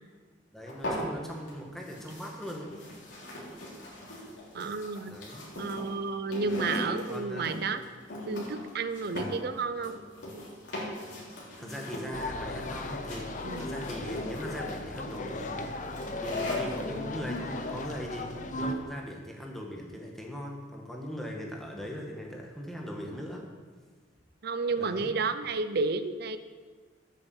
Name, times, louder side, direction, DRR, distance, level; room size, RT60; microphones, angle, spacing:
voice 1, 0.5-2.7 5.1-5.5 7.1-7.5 11.6-13.3 13.6-15.6 16.2-23.5 24.8-25.2, equal, ahead, 0 dB, 1.4 m, -40 dB
sound 1, 0.7-1.5 1.8-16.8, left 1 dB, 70° left, 3.2 m, -40 dB
voice 2, 4.5-5.1 5.6-7.8 8.3-10.0 13.4-13.7 24.4-26.4, right 4 dB, 55° right, 11 dB, 0.6 m, -31 dB
sound 2, 12.1-18.7, left 2 dB, 40° left, 0.7 m, -36 dB
8.5 x 6.8 x 7.1 m, 1.5 s
head